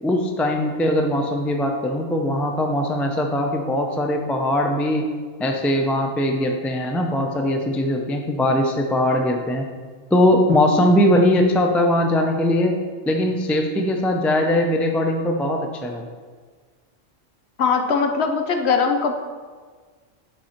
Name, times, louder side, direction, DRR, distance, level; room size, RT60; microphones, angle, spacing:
voice 1, 0.0-5.1 5.4-9.7 10.1-12.7 13.1-16.1, left 1 dB, ahead, 3 dB, 0.4 m, -20 dB
voice 2, 17.6-19.2, left 5 dB, 60° left, 5 dB, 0.9 m, -20 dB
9.1 x 5.5 x 4.4 m, 1.5 s
omnidirectional pair, 1.3 m